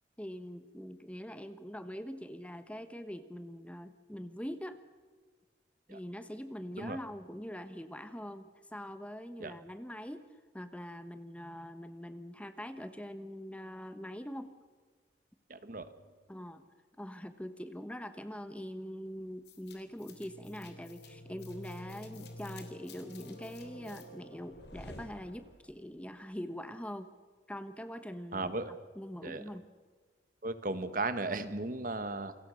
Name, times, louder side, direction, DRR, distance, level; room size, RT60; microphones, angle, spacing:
voice 1, 0.2-4.8 5.9-10.3 10.5-14.5 16.3-16.7 17.0-27.1 27.5-28.5 28.9-29.6, equal, 5° left, 10 dB, 1.1 m, -43 dB
voice 2, 15.5-15.9 28.3-28.7 29.2-29.4 30.4-32.3, right 2 dB, 45° right, 11 dB, 1.4 m, -36 dB
sound 1, 19.5-25.8, left 1 dB, 65° left, 3.6 m, -49 dB
28.5 x 22.5 x 6.4 m, 1.4 s
head